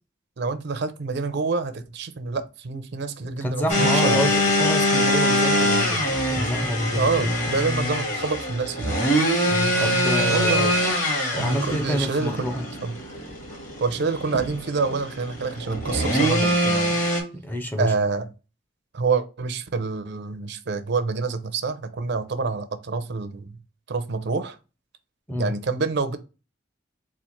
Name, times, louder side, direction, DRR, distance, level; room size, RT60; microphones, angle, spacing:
voice 1, 0.4-4.3 6.9-9.0 10.2-10.7 11.4-12.5 12.8-12.9 13.8-17.0 17.8-18.3 18.9-23.6 23.9-24.6 25.4-26.2, right 4 dB, 60° right, 0.5 m, -27 dB
voice 2, 3.2-7.3 9.5-10.7 11.3-12.7 17.3-17.9 25.3-25.6, equal, 10° left, 0.6 m, -28 dB
sound 1, 3.7-17.2, equal, 40° left, 1.6 m, -24 dB
4.2 x 2.5 x 4.3 m
head